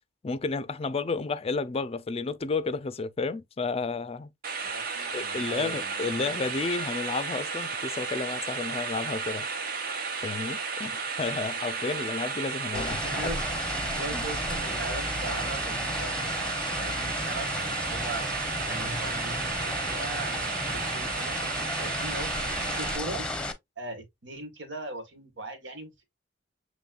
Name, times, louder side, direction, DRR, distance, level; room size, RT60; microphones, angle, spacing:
voice 1, 0.2-4.3 5.1-9.5 10.2-13.4 14.1-14.2, left 4 dB, 35° left, 0.4 m, -32 dB
sound 1, 4.4-23.0, right 5 dB, 55° right, 1.0 m, -33 dB
voice 2, 4.6-6.5 12.7-13.4 13.9-18.2 18.7-23.5 23.8-26.0, right 2 dB, 80° right, 1.7 m, -40 dB
sound 2, 12.7-23.5, left 1 dB, 5° left, 0.7 m, -34 dB
7.2 x 3.1 x 2.3 m
head